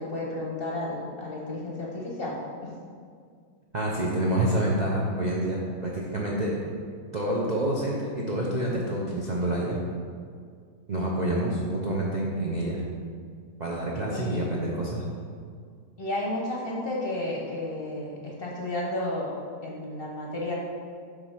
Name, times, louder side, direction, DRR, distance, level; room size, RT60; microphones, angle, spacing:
voice 1, 0.0-2.7 14.1-14.4 16.0-19.3 19.6-20.5, left 1 dB, 40° left, -3 dB, 1.0 m, -32 dB
voice 2, 3.7-6.6 7.1-9.8 10.9-12.8 13.6-15.0, right 1 dB, 45° right, -4 dB, 0.6 m, -27 dB
7.8 x 3.5 x 5.6 m, 2.1 s
omnidirectional pair, 1.9 m